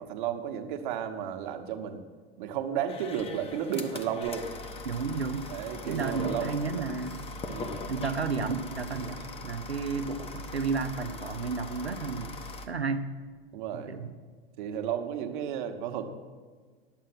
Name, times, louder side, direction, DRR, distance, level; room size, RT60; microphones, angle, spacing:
voice 1, 0.0-2.0 2.4-4.5 4.8-4.9 5.5-6.8 7.4-7.9 9.2-9.3 13.5-13.9 14.6-16.1, right 8 dB, 50° right, 6 dB, 1.1 m, -33 dB
sound 1, 2.9-12.7, left 2 dB, 20° left, 0.8 m, -41 dB
voice 2, 4.8-5.5 5.9-7.2 7.9-12.4 12.7-13.1 13.7-14.1, right 4 dB, 90° right, 9 dB, 0.7 m, -32 dB
11.0 x 7.4 x 6.1 m, 1.5 s
figure-of-eight pair, 95°, 31 cm